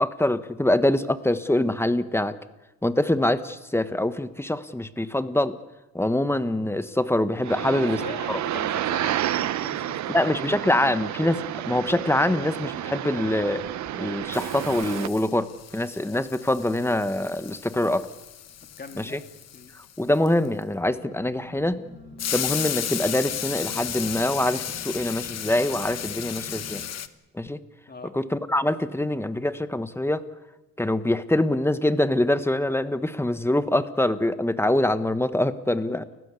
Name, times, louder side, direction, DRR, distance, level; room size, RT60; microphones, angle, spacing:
voice 1, 0.0-2.4 2.8-5.6 5.9-8.0 8.3-8.4 10.1-13.6 14.0-18.1 19.0-19.2 20.0-21.8 22.3-26.8 27.3-27.6 28.1-30.2 30.8-36.0, left 1 dB, 10° left, 12 dB, 1.3 m, -24 dB
sound 1, 7.4-15.1, right 12 dB, 70° right, 0.9 m, -30 dB
voice 2, 7.6-10.4 18.8-19.3 19.5-19.7 27.9-28.1, left 4 dB, 30° left, 6 dB, 3.1 m, -40 dB
sound 2, 13.7-14.0 14.3-20.6 22.2-27.1, left 10 dB, 60° left, 1.3 m, -34 dB
sound 3, 20.8-26.9, left 2 dB, 25° right, 6.6 m, -44 dB
29.5 x 15.5 x 8.4 m, 1.0 s
cardioid pair, 90°, 30 cm